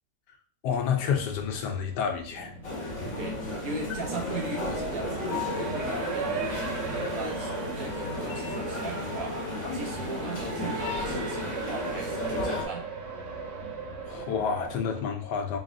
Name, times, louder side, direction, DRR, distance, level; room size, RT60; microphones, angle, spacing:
voice 1, 0.6-2.5 14.1-15.6, left 7 dB, 85° left, 4 dB, 1.3 m, -29 dB
Race car auto racing, 1.0-15.0, right 4 dB, 80° right, 1.5 m, -37 dB
sound 1, 2.6-12.7, left 2 dB, 45° left, 1.3 m, -34 dB
voice 2, 3.2-9.4 9.7-12.9, right 3 dB, 60° right, 0 dB, 1.2 m, -38 dB
4.0 x 3.5 x 2.5 m, 0.42 s
omnidirectional pair, 1.8 m